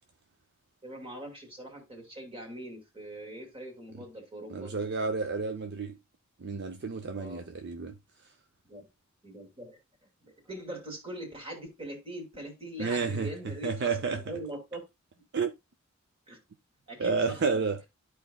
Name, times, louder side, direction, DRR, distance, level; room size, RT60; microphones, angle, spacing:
voice 1, 0.8-4.7 7.1-7.4 8.7-8.8 9.2-9.8 10.2-14.8 16.3-16.4 16.9-17.4, right 1 dB, 25° right, 2.4 m, -42 dB
voice 2, 4.5-6.0 6.4-7.9 12.8-14.3 15.3-15.5 17.0-17.8, right 4 dB, 55° right, 0.6 m, -31 dB
12.5 x 4.7 x 2.3 m
head